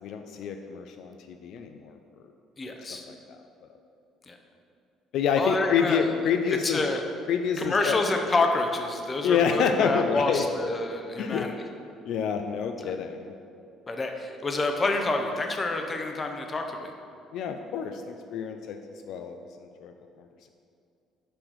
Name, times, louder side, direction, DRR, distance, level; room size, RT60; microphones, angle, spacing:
voice 1, 0.0-2.0 3.1-3.2 5.1-6.8 7.3-8.0 9.2-10.5 11.2-11.5 12.0-13.3 17.3-18.8 19.0-19.9, left 7 dB, 60° left, 6 dB, 0.4 m, -27 dB
voice 2, 2.6-3.1 4.3-4.4 5.4-6.1 6.6-7.0 7.6-11.5 12.8-12.9 13.9-16.9, left 2 dB, 20° left, 4 dB, 0.6 m, -28 dB
6.1 x 5.0 x 6.2 m, 2.5 s
cardioid pair, 155°, 0 cm